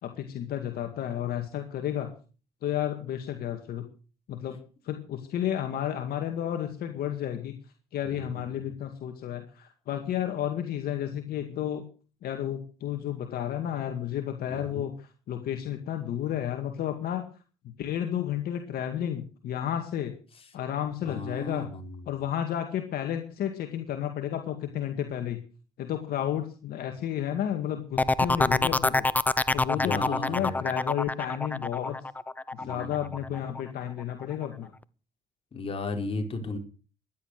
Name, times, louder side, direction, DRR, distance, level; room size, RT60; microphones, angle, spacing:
voice 1, 0.0-2.1 2.6-3.9 4.3-4.6 4.8-7.6 7.9-11.8 12.2-17.3 17.8-20.2 20.5-21.7 22.1-25.4 25.8-29.1 29.5-32.0 32.7-34.7, left 10 dB, 65° left, 5 dB, 2.1 m, -32 dB
voice 2, 8.0-8.4 14.5-14.8 21.0-22.0 29.7-30.6 32.6-33.2 35.5-36.6, left 2 dB, 35° left, 4 dB, 4.6 m, -35 dB
sound 1, 28.0-33.6 34.0-34.5, left 2 dB, 10° left, 0.6 m, -26 dB
15.5 x 11.0 x 6.6 m, 0.38 s
cardioid pair, 110°, 17 cm